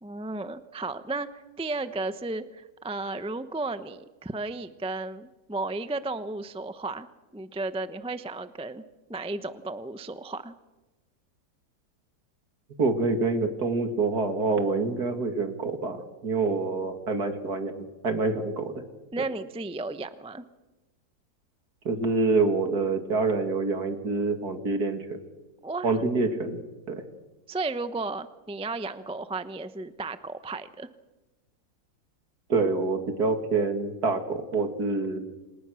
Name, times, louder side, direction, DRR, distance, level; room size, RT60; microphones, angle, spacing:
voice 1, 0.0-8.8 9.1-10.5 19.1-20.4 25.6-26.0 27.5-30.9, right 3 dB, 5° right, 11 dB, 0.4 m, -34 dB
voice 2, 12.8-18.8 21.8-25.2 25.8-26.6 26.9-27.0 32.5-35.2, right 3 dB, 55° right, 6 dB, 2.9 m, -26 dB
30.0 x 26.5 x 6.5 m, 1.1 s
omnidirectional pair, 2.0 m